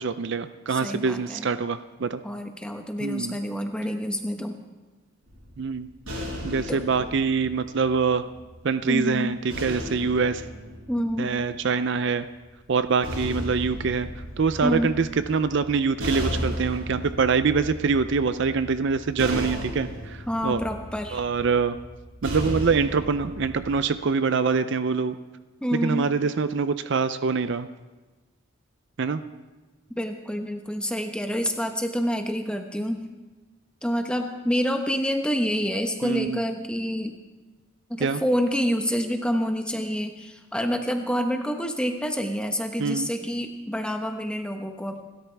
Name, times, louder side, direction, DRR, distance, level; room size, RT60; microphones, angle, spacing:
voice 1, 0.0-2.2 3.0-3.4 5.6-5.9 6.4-8.3 8.6-10.4 11.2-12.3 12.7-14.1 14.4-20.6 21.1-21.8 22.2-25.2 25.7-27.7 29.0-29.2 36.0-36.4 38.0-38.2 42.8-43.1, right 5 dB, 55° right, 12 dB, 0.5 m, -24 dB
voice 2, 0.7-1.5 2.2-4.6 6.7-7.1 8.9-9.4 10.9-11.3 14.6-14.9 20.3-21.2 25.6-26.1 29.9-33.0 33.8-37.1 37.9-45.0, equal, 5° left, 4 dB, 1.1 m, -27 dB
sound 1, 5.3-8.6 9.5-11.8 12.7-23.8, equal, 80° right, 6.7 m, -35 dB
27.0 x 13.0 x 3.4 m, 1.2 s
head